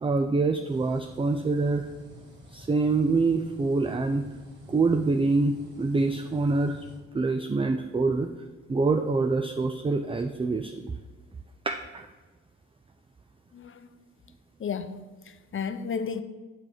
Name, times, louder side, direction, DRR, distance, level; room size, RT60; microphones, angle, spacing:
voice 1, 0.0-1.9 2.5-4.3 4.7-6.9 7.1-8.3 8.7-10.9 11.7-12.1, right 3 dB, 15° right, 7 dB, 0.4 m, -25 dB
sound 1, 0.6-7.0, equal, 65° right, 2.2 m, -49 dB
voice 2, 13.5-13.9 14.6-16.2, left 6 dB, 35° left, 11 dB, 0.7 m, -33 dB
5.9 x 4.5 x 6.5 m, 1.2 s
hypercardioid pair, 45°, 38 cm